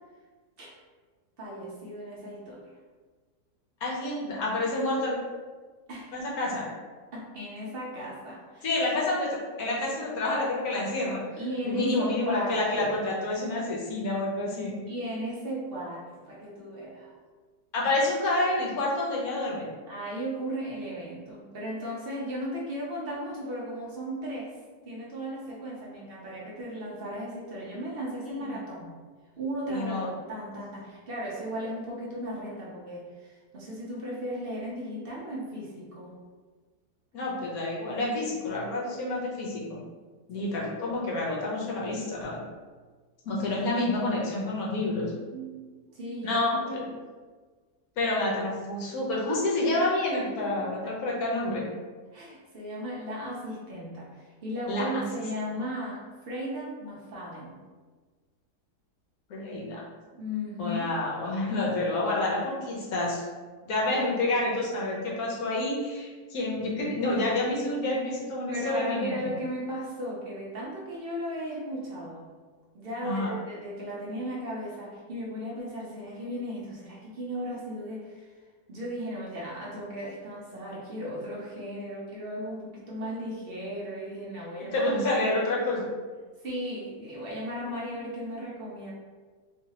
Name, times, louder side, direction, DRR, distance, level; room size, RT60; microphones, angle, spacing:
voice 1, 1.4-2.6 5.9-6.2 7.1-8.7 11.4-12.9 14.9-17.1 19.9-24.5 24.9-29.0 29.4-36.2 40.3-40.7 45.3-46.9 50.4-50.9 52.1-57.6 60.1-60.8 68.5-72.3 72.7-78.3 78.7-85.7 86.4-88.9, equal, 50° right, -5 dB, 0.7 m, -36 dB
voice 2, 3.8-5.2 6.1-6.6 8.6-9.3 9.6-11.2 11.6-14.8 17.7-19.7 28.4-28.5 29.7-30.1 37.1-39.8 40.3-42.4 43.2-45.1 46.2-46.9 48.0-51.6 54.7-55.0 59.3-59.9 60.6-63.2 63.6-69.3 73.0-73.3 84.7-85.8, left 2 dB, 65° left, -4 dB, 1.3 m, -28 dB
3.2 x 2.8 x 2.8 m, 1.4 s
omnidirectional pair, 1.8 m